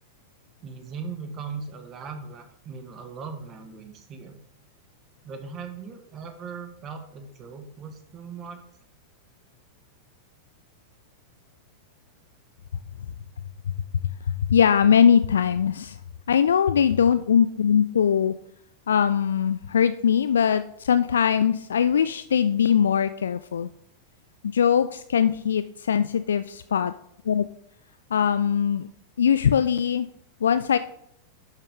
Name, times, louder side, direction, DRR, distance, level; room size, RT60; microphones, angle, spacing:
voice 1, 0.6-4.4 5.2-8.6, right 5 dB, 30° right, 6 dB, 1.4 m, -39 dB
voice 2, 14.3-16.0 16.3-18.3 18.9-23.7 24.4-26.9 27.3-27.5 28.1-28.9 29.2-30.1 30.4-30.8, left 8 dB, 65° left, 12 dB, 0.3 m, -21 dB
11.0 x 6.3 x 3.7 m, 0.72 s
figure-of-eight pair, 90°, 0 cm